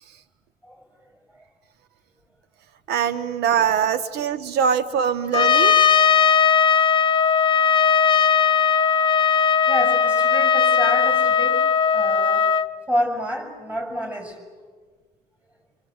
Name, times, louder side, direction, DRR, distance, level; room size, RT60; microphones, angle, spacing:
voice 1, 2.9-5.7, right 8 dB, 75° right, 13 dB, 1.0 m, -22 dB
Trumpet, 5.3-12.7, left 7 dB, 30° left, 0.9 m, -18 dB
voice 2, 9.7-11.6 11.9-12.5 12.9-14.4, equal, 5° right, 5 dB, 6.5 m, -29 dB
27.0 x 25.0 x 7.9 m, 1.5 s
cardioid pair, 110°, 17 cm